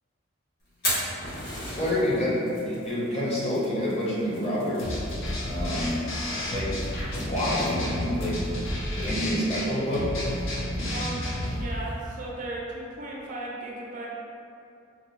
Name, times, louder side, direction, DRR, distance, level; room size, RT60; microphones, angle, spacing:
Fire, 0.6-12.0, equal, 50° left, 1.4 m, -39 dB
voice 1, 1.7-4.9 5.4-8.4 9.0-10.2, left 1 dB, 30° left, -7 dB, 0.8 m, -28 dB
sound 1, 4.8-11.7, left 1 dB, 70° left, 0.6 m, -31 dB
voice 2, 10.9-11.2 11.5-14.1, right 2 dB, 40° right, -3 dB, 0.4 m, -36 dB
3.9 x 2.2 x 3.0 m, 2.6 s
head